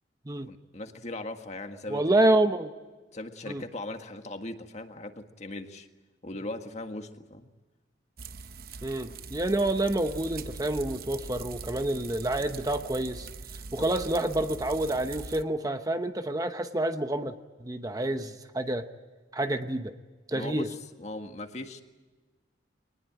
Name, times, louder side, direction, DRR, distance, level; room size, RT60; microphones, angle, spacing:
voice 1, 0.5-2.1 3.1-5.9 6.2-7.5 13.8-13.9 20.3-21.8, left 2 dB, 40° left, 6 dB, 1.7 m, -39 dB
voice 2, 1.9-2.7 3.5-3.6 8.8-13.3 13.7-17.3 17.6-18.8 19.3-19.9 20.3-20.7, right 1 dB, 20° right, 8 dB, 0.9 m, -28 dB
sound 1, 8.2-15.4, right 4 dB, 50° right, 0.8 m, -42 dB
23.5 x 20.0 x 9.0 m, 1.3 s
head